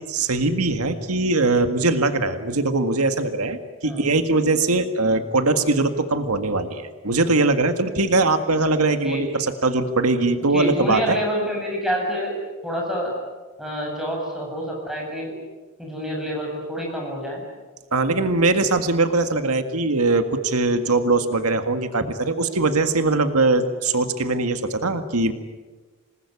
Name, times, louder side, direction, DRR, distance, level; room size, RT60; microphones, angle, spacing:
voice 1, 0.1-11.2 17.9-25.3, right 3 dB, 85° right, 8 dB, 1.8 m, -21 dB
voice 2, 10.4-13.1 13.6-15.4 15.8-17.4, equal, ahead, -2 dB, 7.9 m, -27 dB
27.0 x 20.0 x 9.8 m, 1.3 s
head